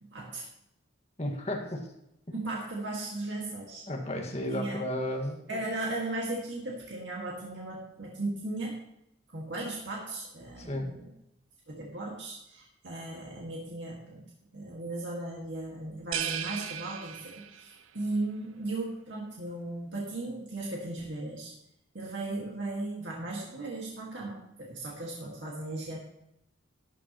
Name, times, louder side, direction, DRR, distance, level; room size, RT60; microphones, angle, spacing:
voice 1, 0.1-0.4 2.3-3.8 4.5-4.9 5.5-8.8 9.3-11.1 11.7-14.3 14.5-21.5 21.9-26.0, right 2 dB, 60° right, -3 dB, 2.0 m, -36 dB
voice 2, 1.2-1.9 3.9-5.6 10.6-10.9, left 1 dB, 30° left, 1 dB, 1.8 m, -33 dB
sound 1, 16.1-17.8, right 9 dB, 80° right, 0.5 m, -36 dB
13.0 x 12.0 x 3.1 m, 0.81 s
head